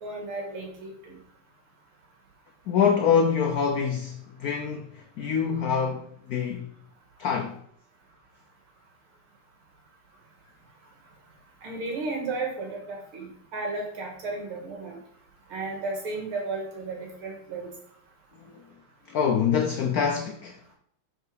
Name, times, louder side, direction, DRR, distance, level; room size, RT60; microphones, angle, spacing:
voice 1, 0.0-1.2 11.6-15.0 15.5-17.7, right 3 dB, 75° right, 2.6 m, -34 dB
voice 2, 2.7-4.9 5.2-6.7 7.2-7.6 19.1-20.5, left 7 dB, 80° left, 0.8 m, -25 dB
6.5 x 4.6 x 5.1 m
omnidirectional pair, 2.4 m